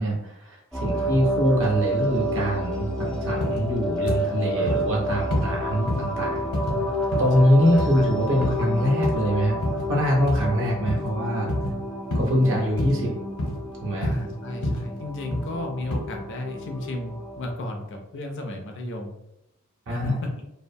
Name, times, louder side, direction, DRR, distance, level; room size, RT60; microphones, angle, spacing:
voice 1, 0.0-6.5 7.2-9.6 9.9-11.5 12.1-13.1 13.8-14.1 19.9-20.2, equal, 65° right, -1 dB, 0.6 m, -23 dB
sound 1, 0.7-17.5, equal, 5° left, 0.3 m, -30 dB
voice 2, 0.9-1.3 4.6-4.8 5.7-6.0 7.4-8.0 8.5-8.6 14.0-19.2 19.9-20.4, left 1 dB, 60° left, 3 dB, 0.5 m, -34 dB
sound 2, 3.4-3.6 4.1-4.2 4.7-4.9 5.3-5.5 5.9-6.1 6.5-6.8 7.1-7.4 7.8-8.0 8.4-8.6 9.0-9.2 9.6-9.9 10.3-10.5 10.9-11.1 11.5-11.8 12.1-12.3 12.8-13.0 13.4-13.6 14.0-14.3 14.6-14.8 15.3-15.5 15.9-16.0, left 1 dB, 75° left, 1.0 m, -27 dB
2.4 x 2.1 x 2.6 m, 0.86 s
head